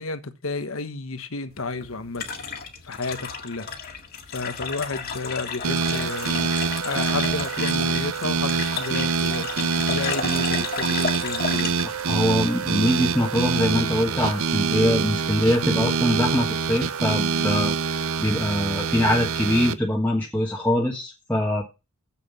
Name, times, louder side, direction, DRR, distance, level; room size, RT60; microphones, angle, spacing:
voice 1, 0.0-2.2 2.8-3.7 4.3-11.7, left 3 dB, 80° left, 1.3 m, -32 dB
sound 1, 1.5-13.2, left 5 dB, 45° left, 1.8 m, -33 dB
sound 2, 5.6-19.7, right 5 dB, 80° right, 0.7 m, -25 dB
voice 2, 11.8-21.6, left 1 dB, 10° left, 1.4 m, -23 dB
7.6 x 7.0 x 7.1 m
head